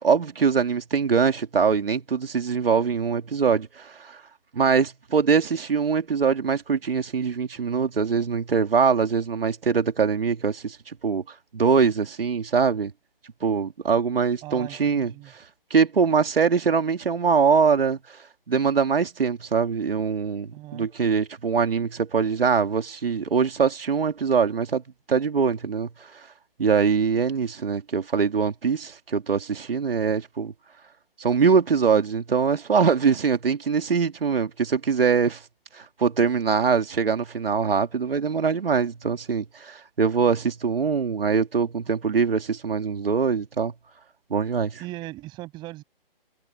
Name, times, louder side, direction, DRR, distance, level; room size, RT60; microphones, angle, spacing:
voice 1, 0.0-4.2 4.5-11.2 11.5-12.9 13.4-15.1 15.7-18.2 18.5-24.8 25.1-26.3 26.6-30.5 31.2-35.4 35.7-43.7 44.3-44.8, right 6 dB, 75° right, 2.7 m, -23 dB
voice 2, 14.4-15.3 20.5-20.9 44.8-45.8, right 18 dB, 15° right, 7.5 m, -38 dB
hypercardioid pair, 165°, 29 cm